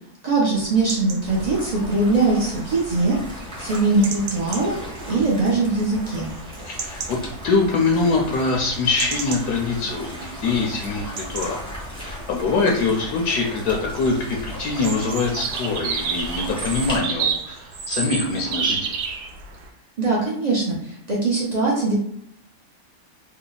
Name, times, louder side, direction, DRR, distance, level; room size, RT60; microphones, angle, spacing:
voice 1, 0.2-3.2 3.6-4.8 5.1-6.3 20.0-21.9, right 3 dB, 55° right, -5 dB, 0.4 m, -21 dB
sound 1, 0.6-19.7, right 6 dB, 75° right, 1.1 m, -33 dB
sound 2, 1.3-17.0, equal, 5° left, 0.6 m, -36 dB
voice 2, 6.6-7.2 7.4-11.6 12.0-19.0, left 3 dB, 70° left, -1 dB, 1.0 m, -23 dB
3.3 x 2.0 x 3.9 m, 0.71 s
omnidirectional pair, 1.8 m